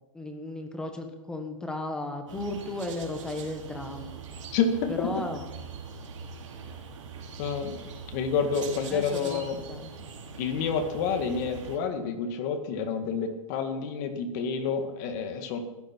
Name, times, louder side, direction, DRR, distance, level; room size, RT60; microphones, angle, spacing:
voice 1, 0.1-4.1 4.9-5.4 8.9-9.8, left 2 dB, 5° left, 5 dB, 1.4 m, -35 dB
sound 1, 2.3-11.8, right 5 dB, 60° right, 3.8 m, -42 dB
voice 2, 4.5-5.2 7.4-7.8 8.1-9.6 10.4-15.6, left 5 dB, 30° left, 7 dB, 1.9 m, -29 dB
20.0 x 14.5 x 4.6 m, 1.1 s
hypercardioid pair, 160°, 18 cm